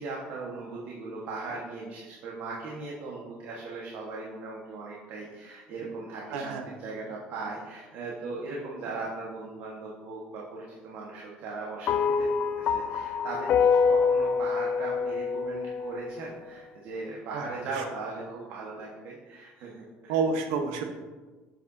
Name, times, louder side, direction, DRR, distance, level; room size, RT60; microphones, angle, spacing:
voice 1, 0.0-20.2, right 3 dB, 65° right, -4 dB, 1.4 m, -38 dB
voice 2, 6.3-6.7 17.3-17.4 20.1-20.8, right 5 dB, 90° right, 5 dB, 1.0 m, -28 dB
sound 1, 11.9-16.3, left 6 dB, 50° left, 0.4 m, -26 dB
7.6 x 7.5 x 2.7 m, 1.3 s
cardioid pair, 120°, 4 cm